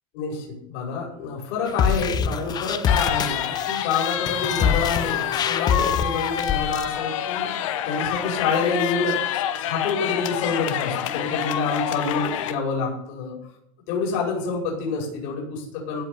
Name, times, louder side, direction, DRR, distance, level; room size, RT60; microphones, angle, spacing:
voice 1, 0.1-7.5 7.9-9.2 9.7-13.3 13.9-16.0, left 4 dB, 60° left, -1 dB, 5.7 m, -27 dB
sound 1, 1.7-6.9, left 7 dB, 25° left, 0.8 m, -25 dB
sound 2, 2.9-12.5, left 11 dB, 75° left, 1.5 m, -27 dB
16.0 x 5.6 x 9.6 m, 0.74 s
supercardioid pair, 150°, 17 cm